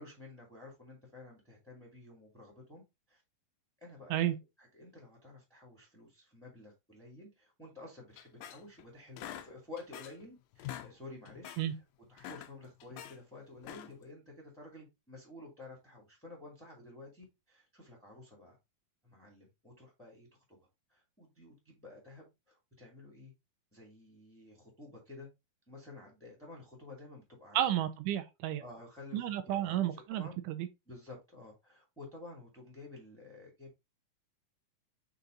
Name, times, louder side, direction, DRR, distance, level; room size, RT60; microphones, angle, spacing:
voice 1, 0.0-2.8 3.1-3.2 3.8-4.3 4.6-11.8 12.1-18.6 19.0-20.6 20.9-23.3 23.7-25.3 25.7-27.7 28.6-30.4 30.9-33.8, left 2 dB, ahead, 1.9 m, -51 dB
sound 1, 8.2-8.8 9.2-10.3 10.5-10.9 11.3-11.7 12.1-13.2 13.6-14.1, left 12 dB, 80° left, 2.4 m, -46 dB
voice 2, 27.5-28.6 29.1-30.7, right 12 dB, 80° right, 2.0 m, -32 dB
5.9 x 4.2 x 3.8 m
omnidirectional pair, 4.1 m